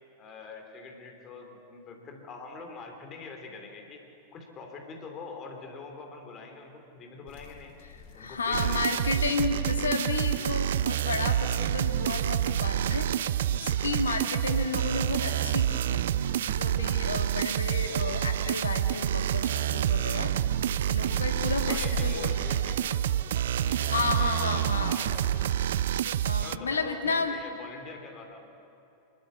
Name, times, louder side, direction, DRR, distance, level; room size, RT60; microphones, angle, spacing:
voice 1, 0.2-4.0 4.3-7.8 8.1-9.0 21.6-23.1 23.6-25.5 26.4-28.5, left 4 dB, 30° left, 3 dB, 2.9 m, -44 dB
sound 1, 7.3-24.6, left 8 dB, 50° left, 1.1 m, -47 dB
voice 2, 8.2-13.2 13.5-16.1 16.5-20.3 20.9-22.3 23.9-25.0 26.2-27.4, left 4 dB, 70° left, 5 dB, 1.7 m, -32 dB
sound 2, 8.5-26.6, right 11 dB, 60° right, 0.4 m, -28 dB
26.5 x 12.0 x 8.4 m, 2.9 s
figure-of-eight pair, 90°, 0 cm